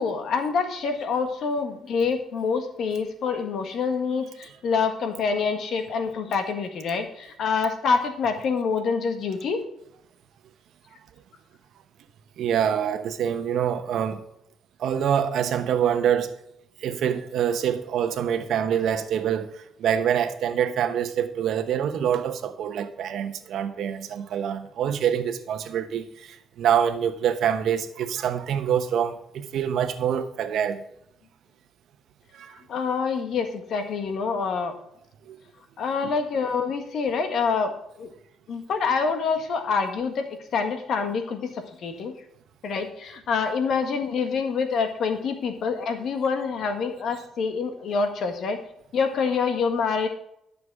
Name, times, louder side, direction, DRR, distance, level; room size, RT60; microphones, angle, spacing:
voice 1, 0.0-9.6 32.7-34.7 35.8-38.1 38.5-40.2 40.5-42.1 42.6-48.6 48.9-50.1, left 5 dB, 65° left, 1.6 m, -26 dB
voice 2, 12.4-14.2 14.8-16.3 16.8-30.8 32.3-32.6 35.3-35.4 36.0-36.1, right 9 dB, 75° right, 1.0 m, -25 dB
11.5 x 6.8 x 4.8 m
cardioid pair, 90°, 0 cm